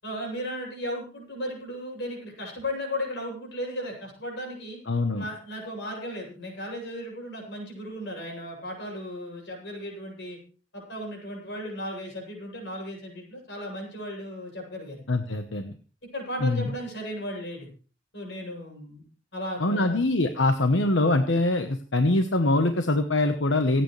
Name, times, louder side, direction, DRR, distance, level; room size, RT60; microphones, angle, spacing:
voice 1, 0.0-4.8 5.2-10.4 10.7-15.0 16.1-17.7 18.1-19.0 19.3-20.0, equal, 65° left, 0 dB, 7.7 m, -35 dB
voice 2, 4.9-5.2 15.1-15.7 16.4-16.6 19.6-23.8, left 2 dB, 90° left, 6 dB, 1.2 m, -23 dB
27.0 x 9.3 x 3.3 m, 0.38 s
head